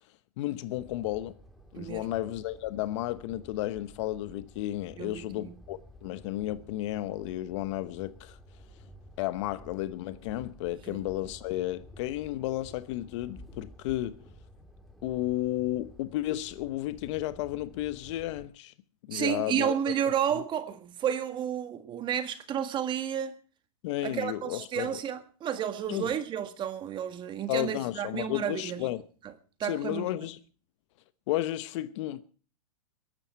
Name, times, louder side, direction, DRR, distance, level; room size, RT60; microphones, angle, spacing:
voice 1, 0.4-1.3 1.7-8.4 9.2-14.2 15.0-18.7 19.1-19.7 20.3-20.4 23.8-25.0 25.9-26.1 27.5-29.0 29.6-30.4 31.3-32.2, left 15 dB, 50° left, 1.1 m, -33 dB
sound 1, 0.7-18.5, equal, ahead, 3.0 m, -52 dB
voice 2, 1.7-2.1 5.0-5.6 10.9-11.0 19.1-23.4 24.0-28.9 29.6-30.1, right 9 dB, 25° right, 1.7 m, -31 dB
22.0 x 11.5 x 4.6 m
hypercardioid pair, 135°, 20 cm